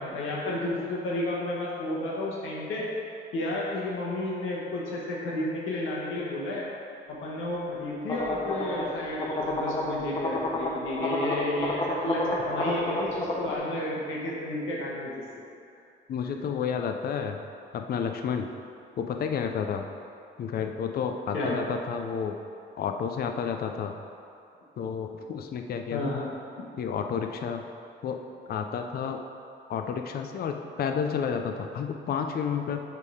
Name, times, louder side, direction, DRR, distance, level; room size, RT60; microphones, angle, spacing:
voice 1, 0.0-2.9 3.3-6.6 7.1-15.1 21.3-21.5 25.9-26.3, left 1 dB, 85° left, -4 dB, 1.2 m, -31 dB
sound 1, 8.1-13.6, left 2 dB, 20° left, 0.8 m, -30 dB
voice 2, 16.1-17.4 17.7-18.5 19.0-19.9 20.4-22.4 22.8-23.9 24.8-26.2 26.8-27.6 28.0-28.2 28.5-29.2 29.7-32.8, left 7 dB, 50° left, 5 dB, 0.5 m, -30 dB
6.6 x 3.6 x 4.8 m, 2.5 s
cardioid pair, 90°, 20 cm